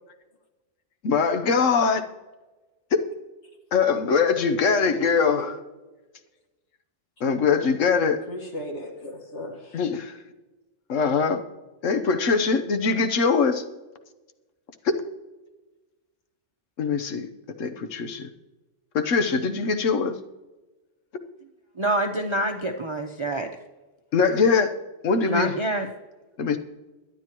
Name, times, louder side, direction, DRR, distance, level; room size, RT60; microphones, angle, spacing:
voice 1, 1.0-2.0 2.9-3.1 3.7-5.6 7.2-8.2 9.7-10.2 10.9-11.4 11.8-13.6 14.8-15.0 16.8-17.3 17.6-18.3 18.9-20.2 24.1-24.7 25.0-25.5 26.4-26.6, left 5 dB, 85° left, 8 dB, 1.3 m, -22 dB
voice 2, 4.8-5.6 8.3-9.8, equal, 70° left, 1 dB, 2.4 m, -37 dB
voice 3, 21.8-23.5 25.3-25.9, right 1 dB, 30° right, 4 dB, 0.7 m, -26 dB
22.5 x 10.0 x 3.0 m, 1.2 s
omnidirectional pair, 1.3 m